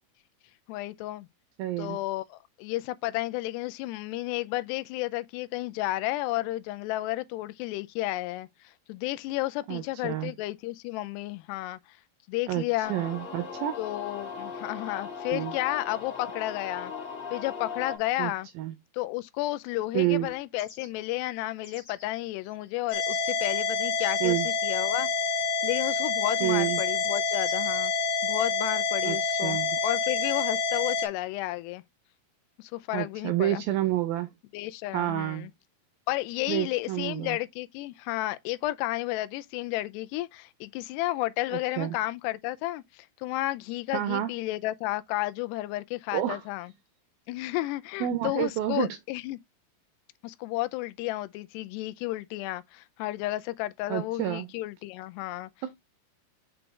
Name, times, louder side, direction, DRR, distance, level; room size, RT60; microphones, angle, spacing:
voice 1, 0.7-1.3 1.8-12.0 12.3-12.9 13.8-16.9 17.3-18.5 18.9-27.9 28.2-31.8 32.6-33.6 34.5-35.5 36.1-46.7 47.3-49.4 50.2-55.5, left 17 dB, 85° left, 2.7 m, -32 dB
voice 2, 1.6-2.0 9.7-10.3 12.5-12.6 12.9-13.8 15.3-15.5 18.2-18.7 19.9-20.4 24.2-24.5 26.4-26.8 29.0-29.8 32.9-34.3 34.9-35.5 36.5-37.4 41.8-42.0 43.9-44.3 46.1-46.5 48.0-48.9 53.9-54.5 55.6-55.7, right 13 dB, 80° right, 2.2 m, -29 dB
sound 1, 12.8-18.0, left 5 dB, 35° left, 1.9 m, -38 dB
sound 2, 20.6-20.9 21.6-22.1 22.5-24.6 26.0-26.1 26.5-28.2, left 5 dB, 50° left, 1.7 m, -47 dB
sound 3, 22.9-31.1, left 4 dB, 70° left, 2.8 m, -27 dB
6.1 x 5.0 x 3.3 m
omnidirectional pair, 4.8 m